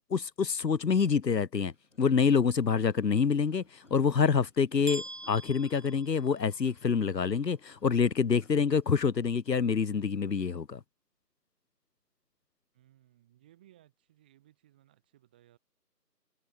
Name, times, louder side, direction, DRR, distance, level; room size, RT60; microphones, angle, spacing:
voice 1, 0.1-1.7 2.0-3.6 3.9-10.8, left 6 dB, 85° left, 0.8 m, -26 dB
sound 1, 1.7-9.0, left 2 dB, 45° left, 6.5 m, -63 dB
sound 2, 4.9-6.9, right 2 dB, 65° right, 4.7 m, -43 dB
voice 2, 12.7-15.6, right 13 dB, 5° right, 5.1 m, -62 dB
figure-of-eight pair, 170°, 49 cm